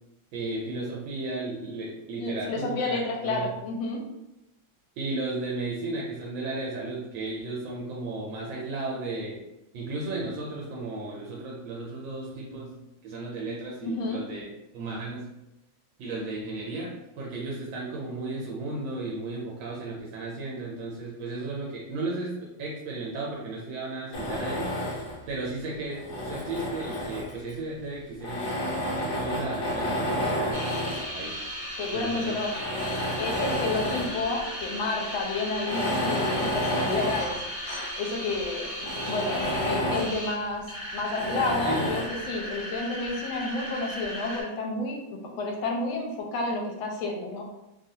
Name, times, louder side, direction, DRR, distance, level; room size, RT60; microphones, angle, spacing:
voice 1, 0.3-3.5 5.0-9.4 9.7-12.7 13.0-15.3 16.0-16.9 17.2-24.7 25.3-28.5 29.0-31.4 31.9-32.3 41.6-41.9, right 2 dB, 80° right, -3 dB, 1.4 m, -34 dB
voice 2, 2.2-4.0 13.8-14.2 30.2-30.4 31.8-32.5 33.2-37.4 38.0-40.7 40.9-47.4, left 3 dB, 85° left, 0 dB, 1.4 m, -30 dB
Tools, 24.1-25.2 25.9-27.5 28.2-31.1 31.8-31.9 32.5-34.2 34.6-34.7 35.5-38.0 38.4-38.5 38.8-40.2 41.2-42.2, left 1 dB, 60° left, 1.2 m, -30 dB
sound 1, 30.5-44.4, equal, 15° right, 1.0 m, -36 dB
3.3 x 2.4 x 2.7 m, 0.90 s
omnidirectional pair, 2.1 m